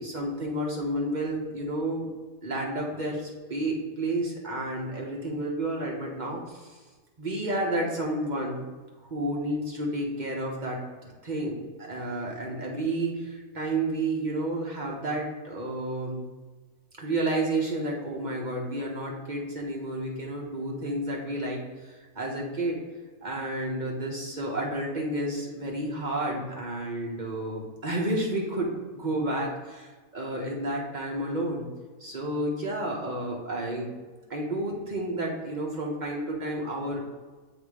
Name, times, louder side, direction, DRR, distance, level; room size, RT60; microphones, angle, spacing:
voice 1, 0.0-2.1 2.4-6.7 7.2-8.7 9.0-16.2 17.0-22.8 23.2-31.6 32.0-33.9 34.3-37.0, right 1 dB, 35° right, -1 dB, 1.1 m, -31 dB
7.2 x 2.8 x 4.8 m, 1.3 s
omnidirectional pair, 1.6 m